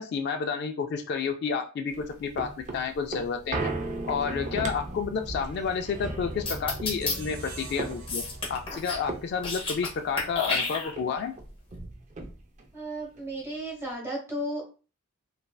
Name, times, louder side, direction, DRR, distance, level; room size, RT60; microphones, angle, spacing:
voice 1, 0.0-3.7 4.1-8.2 8.5-11.3, left 6 dB, 50° left, 5 dB, 0.3 m, -30 dB
sound 1, 1.9-10.6 11.0-11.1 11.3-12.7 13.2-13.3, right 2 dB, 35° right, 0.5 m, -37 dB
sound 2, 6.5-7.1 8.1-9.0 9.3-9.9 10.2-11.2, left 3 dB, 25° left, 0.8 m, -30 dB
sound 3, 7.0-10.2, right 2 dB, 80° right, 0.7 m, -47 dB
voice 2, 12.7-14.6, right 1 dB, 10° right, -2 dB, 1.1 m, -34 dB
3.1 x 2.5 x 2.2 m, 0.35 s
head